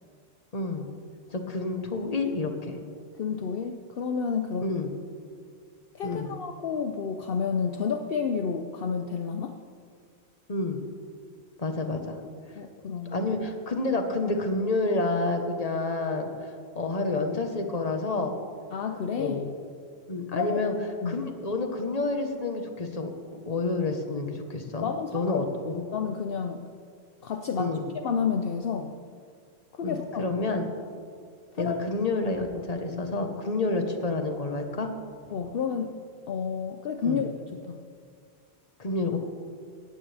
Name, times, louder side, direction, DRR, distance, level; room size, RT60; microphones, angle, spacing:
voice 1, 0.5-0.9 1.3-2.8 4.6-4.9 6.0-6.3 10.5-10.8 11.6-12.2 13.1-18.4 19.2-19.5 20.1-20.7 21.1-25.8 27.6-27.9 29.8-30.7 31.6-34.9 37.0-37.2 38.8-39.2, left 3 dB, 35° left, 5 dB, 1.3 m, -29 dB
voice 2, 3.1-4.7 5.9-9.6 12.6-13.3 18.7-19.4 20.3-20.6 21.0-21.2 24.8-26.6 27.2-29.0 29.7-30.3 31.6-31.8 35.3-35.9 36.3-37.8, left 6 dB, 60° left, 6 dB, 0.9 m, -30 dB
18.5 x 15.0 x 3.5 m, 2.2 s
omnidirectional pair, 1.1 m